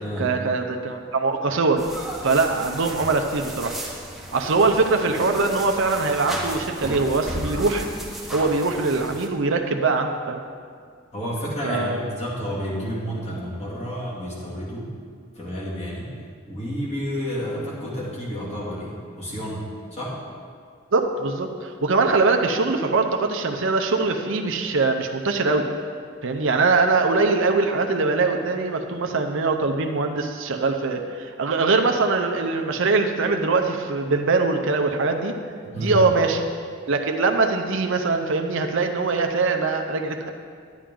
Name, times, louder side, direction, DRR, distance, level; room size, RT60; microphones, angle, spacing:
voice 1, 0.0-1.8 2.2-3.7 4.3-7.8 8.3-10.4 11.6-12.0 20.9-25.7 26.2-35.3 35.8-36.4 36.9-40.3, right 3 dB, 65° right, 4 dB, 0.7 m, -22 dB
sound 1, 1.8-9.3, right 1 dB, ahead, 1.0 m, -34 dB
voice 2, 11.1-14.9 15.3-16.1 16.5-19.6 19.9-20.2 35.6-36.0, equal, 35° left, -6 dB, 2.4 m, -30 dB
11.5 x 8.6 x 3.8 m, 2.1 s
head